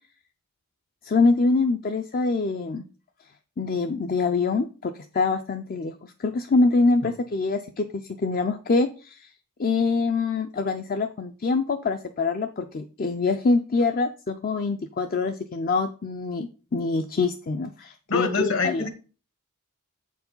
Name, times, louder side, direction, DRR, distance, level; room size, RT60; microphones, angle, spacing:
voice 1, 1.0-2.8 3.6-9.3 9.6-18.9, left 3 dB, 40° left, 7 dB, 0.4 m, -25 dB
voice 2, 18.1-18.9, left 4 dB, 60° left, 8 dB, 1.3 m, -25 dB
7.7 x 4.7 x 5.3 m, 0.36 s
head